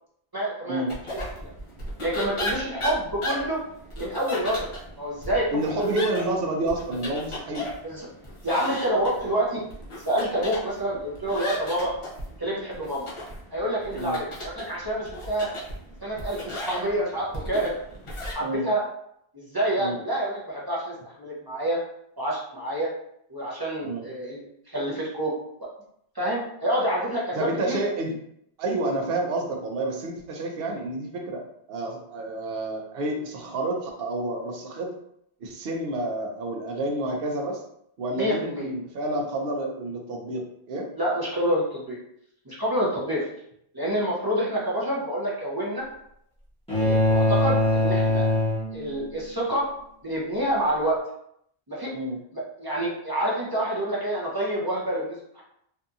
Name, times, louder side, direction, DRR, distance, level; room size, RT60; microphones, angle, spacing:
voice 1, 0.3-0.8 1.1-1.5 2.0-3.6 4.0-4.7 5.0-5.9 7.8-8.1 8.4-9.6 10.1-11.9 12.4-13.1 13.5-15.5 16.0-17.8 18.3-18.8 19.3-21.8 22.2-22.9 23.3-24.4 24.7-25.3 25.6-25.7 26.1-27.8 38.1-38.7 40.9-42.0 42.5-43.3 43.7-45.9 46.8-48.3 48.7-49.7 50.0-51.0 51.7-51.9 52.3-55.4, right 1 dB, 30° right, -5 dB, 0.5 m, -27 dB
sound 1, 0.9-18.3, left 1 dB, 35° left, 0.6 m, -36 dB
voice 2, 5.5-7.7 14.0-14.2 18.4-18.7 19.8-20.0 23.8-24.0 27.4-28.2 28.6-31.4 31.7-34.9 35.4-37.6 38.0-40.4 40.7-40.9 51.9-52.2, right 2 dB, 65° right, 2 dB, 0.8 m, -29 dB
sound 2, 46.7-49.2, left 2 dB, 5° left, 1.0 m, -22 dB
2.7 x 2.6 x 2.3 m, 0.73 s
omnidirectional pair, 1.1 m